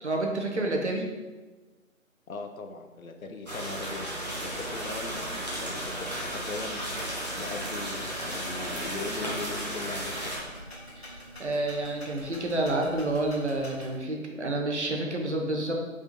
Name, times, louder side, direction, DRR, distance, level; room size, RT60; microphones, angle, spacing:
voice 1, 0.0-1.0 11.0-15.7, right 2 dB, 55° right, 1 dB, 0.8 m, -29 dB
voice 2, 2.3-4.1 4.4-6.8 7.3-10.3, left 3 dB, 80° left, 5 dB, 0.7 m, -39 dB
sound 1, 3.5-10.4, equal, 30° left, 0.8 m, -34 dB
sound 2, 4.5-14.0, equal, 45° left, 1.5 m, -46 dB
5.0 x 3.5 x 2.8 m, 1.2 s
figure-of-eight pair, 180°, 42 cm